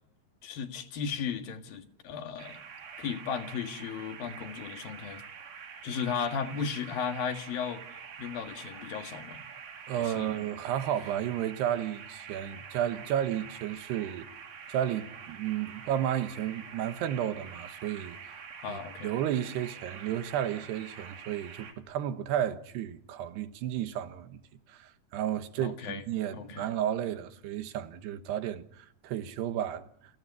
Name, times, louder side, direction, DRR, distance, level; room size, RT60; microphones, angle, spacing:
voice 1, 0.4-2.6 3.0-5.2 5.8-7.8 8.2-9.4 9.9-10.4 18.6-19.1 25.6-26.0 26.3-26.7, left 6 dB, 65° left, 3.4 m, -35 dB
sound 1, 2.4-21.7, right 6 dB, 65° right, 4.7 m, -46 dB
voice 2, 9.9-14.3 14.7-18.4 18.7-24.4 24.7-29.9, right 10 dB, 85° right, 3.4 m, -32 dB
29.5 x 20.0 x 9.7 m
omnidirectional pair, 4.7 m